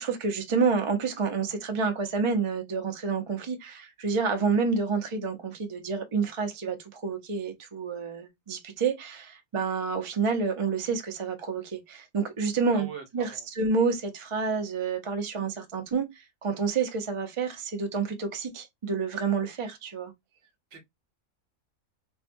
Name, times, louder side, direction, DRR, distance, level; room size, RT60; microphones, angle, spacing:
voice 1, 0.0-20.1, right 5 dB, 35° right, 0.5 m, -29 dB
voice 2, 12.7-13.4 20.7-20.8, right 7 dB, 60° right, 1.1 m, -41 dB
4.4 x 2.2 x 2.5 m
omnidirectional pair, 1.4 m